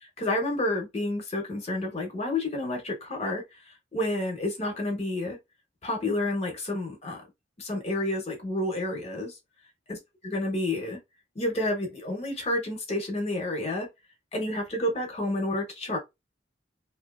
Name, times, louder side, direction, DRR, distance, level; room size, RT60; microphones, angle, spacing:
voice 1, 0.2-3.4 3.9-5.4 5.8-7.2 7.6-9.4 9.9-10.0 10.2-11.0 11.4-13.9 14.3-16.0, left 1 dB, 35° left, 0.7 m, -29 dB
2.6 x 2.3 x 2.2 m
head